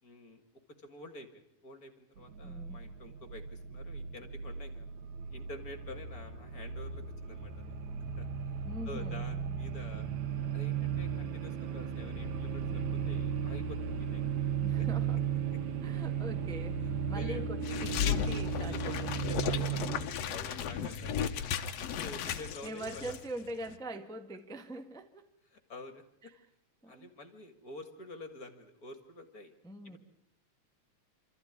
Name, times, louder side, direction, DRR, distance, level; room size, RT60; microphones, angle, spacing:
voice 1, 0.0-0.4 0.8-4.9 5.3-7.8 8.2-8.3 8.9-10.1 10.5-14.2 14.8-14.9 17.1-17.5 18.6-21.4 21.9-23.1 25.5-26.0 26.9-29.5 29.8-30.0, left 2 dB, 35° left, 8 dB, 2.1 m, -48 dB
sound 1, 2.2-20.0, right 7 dB, 80° right, 2.9 m, -36 dB
voice 2, 2.4-2.9 8.6-9.6 14.6-15.2 15.8-19.2 20.9-21.1 22.2-25.3 26.2-26.4 26.8-27.1 29.6-30.0, right 1 dB, 5° left, 7 dB, 0.4 m, -43 dB
sound 2, 17.6-23.2 23.5-23.7, left 8 dB, 65° left, 2.1 m, -35 dB
27.0 x 14.0 x 9.7 m, 0.78 s
omnidirectional pair, 3.3 m